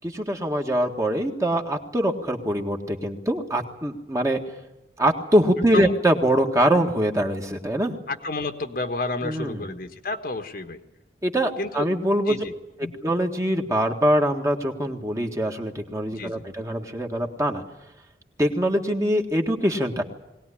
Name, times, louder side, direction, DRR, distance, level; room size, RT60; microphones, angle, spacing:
voice 1, 0.0-4.4 5.0-8.0 9.2-9.7 11.2-12.4 13.0-17.6 18.4-20.0, right 1 dB, 20° right, 3 dB, 1.7 m, -23 dB
voice 2, 8.1-10.8 11.6-11.9 12.3-12.5 12.8-12.9 16.1-16.4, left 2 dB, 55° left, 6 dB, 1.4 m, -30 dB
21.5 x 18.5 x 10.0 m, 0.95 s
head